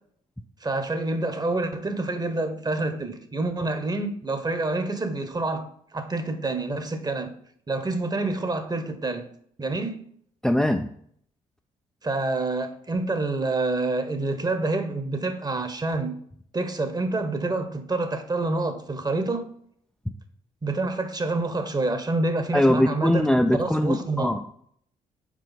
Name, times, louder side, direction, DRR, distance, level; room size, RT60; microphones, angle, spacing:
voice 1, 0.6-7.3 7.7-9.3 9.6-10.0 12.0-16.2 16.5-19.5 20.6-23.3 23.5-24.3, right 2 dB, 25° right, 1.1 m, -27 dB
voice 2, 10.4-10.9 22.5-24.5, left 1 dB, 5° left, 0.5 m, -21 dB
4.9 x 4.6 x 5.9 m
supercardioid pair, 55°, 16 cm